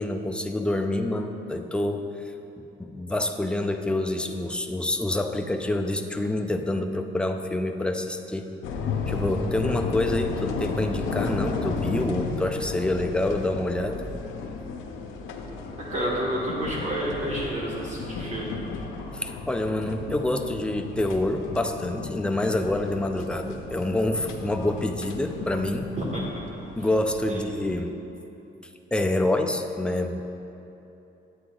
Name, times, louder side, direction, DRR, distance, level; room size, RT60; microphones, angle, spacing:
voice 1, 0.0-2.1 2.6-8.5 9.1-14.0 19.1-25.9 26.8-27.9 28.9-30.2, left 1 dB, 5° left, 4 dB, 0.4 m, -27 dB
sound 1, 8.6-27.7, left 4 dB, 85° left, 0.6 m, -34 dB
voice 2, 15.8-18.6 26.0-26.4 27.3-27.4, right 1 dB, 35° right, -5 dB, 1.4 m, -30 dB
9.6 x 8.5 x 2.4 m, 2.9 s
cardioid pair, 90°, 20 cm